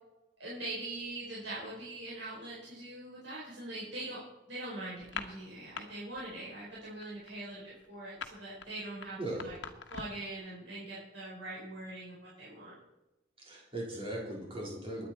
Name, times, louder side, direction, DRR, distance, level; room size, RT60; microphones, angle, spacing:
voice 1, 0.4-4.2 4.5-9.6 9.9-12.7, right 2 dB, 75° right, -7 dB, 4.6 m, -42 dB
sound 1, 5.0-5.8 6.1-6.5 6.7-10.3, left 5 dB, 75° left, 1.3 m, -43 dB
voice 2, 13.4-15.1, right 1 dB, 30° right, -3 dB, 4.3 m, -38 dB
21.5 x 9.7 x 4.4 m, 1.0 s
head